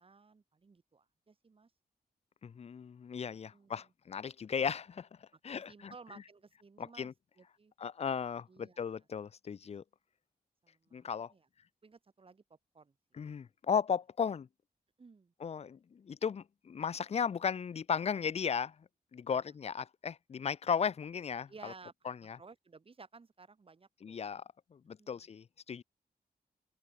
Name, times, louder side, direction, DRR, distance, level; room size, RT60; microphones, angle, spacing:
voice 1, 0.0-1.7 3.5-3.9 5.5-7.7 8.5-8.8 10.6-11.5 11.8-12.4 12.7-12.9 15.0-15.3 19.3-19.4 21.5-21.9 22.3-24.2 25.0-25.3, right 4 dB, 35° right, 1.8 m, -56 dB
voice 2, 2.4-5.9 6.8-7.1 7.8-9.8 10.9-11.3 13.1-14.5 15.4-21.7 22.1-22.4 24.0-24.4 24.7-25.8, left 7 dB, 45° left, 0.5 m, -36 dB
open air
wide cardioid pair, 110°, 16 cm